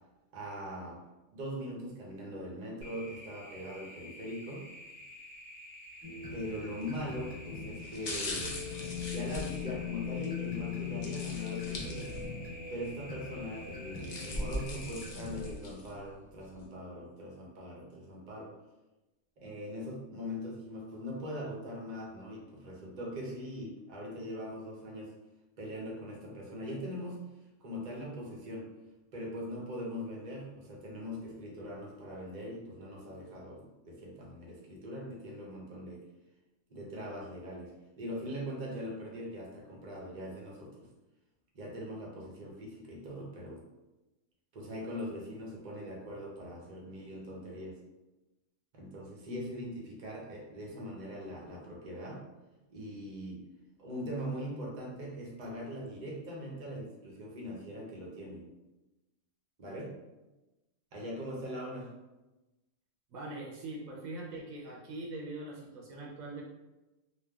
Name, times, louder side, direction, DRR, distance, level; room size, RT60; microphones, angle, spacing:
voice 1, 0.3-1.0 1.3-4.7 6.3-8.5 9.1-12.1 12.7-18.5 19.4-25.1 25.6-27.2 27.6-28.7 29.1-36.0 36.7-37.7 38.0-40.9 41.5-43.6 44.5-47.8 48.7-52.2 52.7-53.4 53.8-58.4 59.6-59.9 60.9-61.9, equal, 50° right, -2 dB, 0.6 m, -41 dB
sound 1, 2.8-15.1, left 1 dB, 60° left, 1.0 m, -50 dB
sound 2, 6.0-15.5, left 7 dB, 5° left, 1.2 m, -40 dB
sound 3, 6.8-7.1 7.8-10.3 11.0-12.5 12.8-12.9 13.7-15.9 16.4-16.5, left 1 dB, 80° left, 0.3 m, -40 dB
voice 2, 63.1-66.4, right 2 dB, 90° right, -3 dB, 1.0 m, -42 dB
3.1 x 2.1 x 2.2 m, 1.0 s
omnidirectional pair, 1.4 m